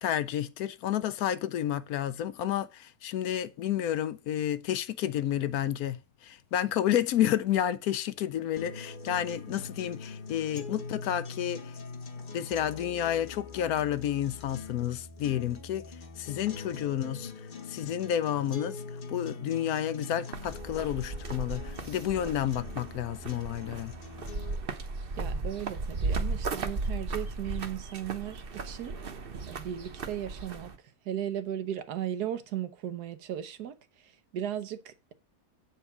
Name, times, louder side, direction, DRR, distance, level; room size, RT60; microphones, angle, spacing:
voice 1, 0.0-11.7 12.3-15.8 16.2-17.3 17.7-18.8 19.1-23.9, left 11 dB, 70° left, 1.0 m, -30 dB
sound 1, 8.6-24.6, left 4 dB, 35° left, 1.0 m, -43 dB
sound 2, 20.3-30.8, right 3 dB, 40° right, 1.0 m, -36 dB
voice 2, 25.2-29.0 29.5-30.7 31.0-35.1, right 10 dB, 80° right, 1.4 m, -36 dB
8.3 x 4.5 x 5.9 m
omnidirectional pair, 1.7 m